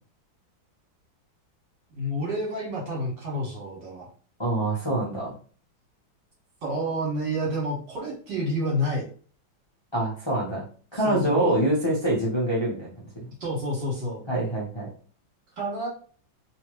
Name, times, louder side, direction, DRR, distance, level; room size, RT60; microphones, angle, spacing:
voice 1, 1.9-4.1 6.6-9.1 10.9-11.5 13.4-14.2 15.6-15.9, equal, 60° right, -3 dB, 2.0 m, -29 dB
voice 2, 4.4-5.3 9.9-10.6 10.9-13.3 14.3-14.9, right 1 dB, 30° left, -6 dB, 0.5 m, -25 dB
3.3 x 3.0 x 3.0 m, 0.41 s
omnidirectional pair, 2.2 m